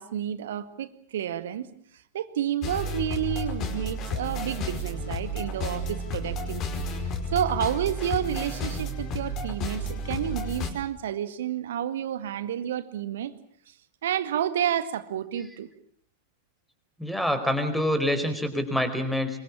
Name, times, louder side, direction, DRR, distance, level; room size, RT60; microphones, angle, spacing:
voice 1, 0.0-1.7 2.1-6.8 7.3-13.3 13.7-13.8 14.0-15.7, right 10 dB, 60° right, 12 dB, 1.9 m, -30 dB
sound 1, 2.6-10.7, left 1 dB, 35° left, 5.1 m, -32 dB
voice 2, 17.0-19.3, left 1 dB, ahead, 8 dB, 4.8 m, -26 dB
26.5 x 23.5 x 7.3 m, 0.62 s
figure-of-eight pair, 90°, 0 cm